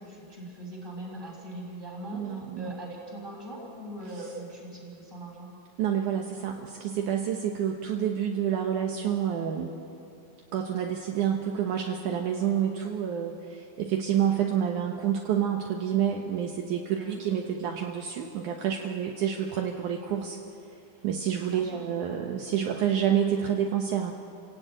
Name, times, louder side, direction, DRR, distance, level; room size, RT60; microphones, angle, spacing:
voice 1, 0.0-5.5 17.0-17.2 21.5-21.8, right 1 dB, 15° right, -2 dB, 5.7 m, -41 dB
voice 2, 2.1-2.7 5.8-9.7 10.5-20.4 21.0-24.1, right 9 dB, 70° right, 1 dB, 2.5 m, -28 dB
28.5 x 16.5 x 9.1 m, 2.7 s
omnidirectional pair, 3.9 m